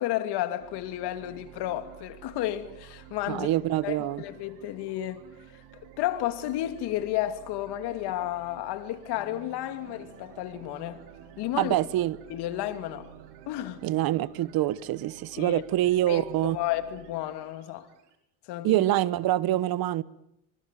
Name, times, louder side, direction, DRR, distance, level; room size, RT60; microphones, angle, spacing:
voice 1, 0.0-3.5 3.8-5.3 5.5-5.6 6.0-11.0 11.4-11.7 12.3-13.1 13.5-13.8 15.4-15.6 16.1-17.9 18.4-18.8, left 13 dB, 70° left, 2.7 m, -32 dB
sound 1, 0.6-18.2, right 10 dB, 75° right, 4.9 m, -51 dB
voice 2, 3.3-4.2 11.6-12.2 13.8-16.6 18.6-20.0, right 14 dB, 60° right, 1.2 m, -25 dB
30.0 x 24.5 x 7.6 m
supercardioid pair, 95°, 41 cm